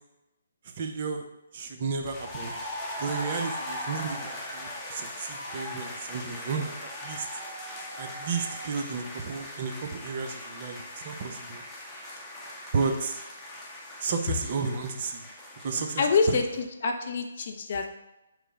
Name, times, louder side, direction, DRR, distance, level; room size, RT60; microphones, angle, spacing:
voice 1, 0.8-1.3 1.5-2.5 3.0-7.3 8.0-11.6 11.9-12.1 12.7-13.2 14.0-15.2 15.6-16.4, right 5 dB, 45° right, 5 dB, 0.5 m, -32 dB
sound 1, 2.0-16.6, left 1 dB, 10° left, 0.8 m, -39 dB
voice 2, 16.0-16.4 16.8-17.9, left 5 dB, 50° left, 4 dB, 0.5 m, -25 dB
4.8 x 2.0 x 4.6 m, 0.96 s
figure-of-eight pair, 140°, 0 cm